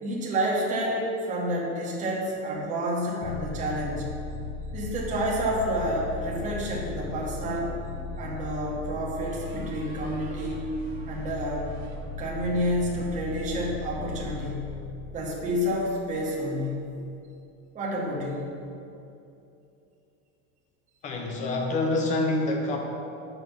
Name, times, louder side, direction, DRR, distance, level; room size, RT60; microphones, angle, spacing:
voice 1, 0.0-4.1 4.7-7.7 8.2-10.7 11.1-11.6 12.2-14.8 15.1-17.0 17.7-18.5, equal, 20° right, -3 dB, 0.9 m, -29 dB
sound 1, 3.2-16.6, left 3 dB, 50° left, 0.8 m, -37 dB
sound 2, 7.7-8.2 9.2-12.7, right 3 dB, 80° right, 1.6 m, -49 dB
voice 2, 21.0-22.8, left 2 dB, 20° left, 1 dB, 0.4 m, -26 dB
5.4 x 4.8 x 5.7 m, 2.8 s
supercardioid pair, 160°, 42 cm